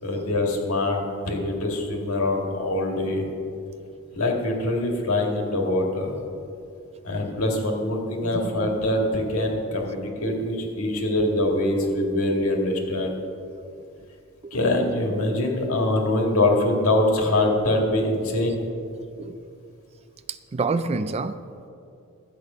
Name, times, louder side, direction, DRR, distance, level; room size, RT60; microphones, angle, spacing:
voice 1, 0.0-3.2 4.1-6.2 7.0-13.1 14.5-18.6, left 1 dB, 75° left, 1 dB, 1.9 m, -24 dB
voice 2, 8.3-8.8 14.4-14.6 18.4-18.5 19.2-19.4 20.5-21.4, right 3 dB, 30° right, 13 dB, 0.3 m, -28 dB
12.5 x 8.3 x 5.6 m, 2.5 s
head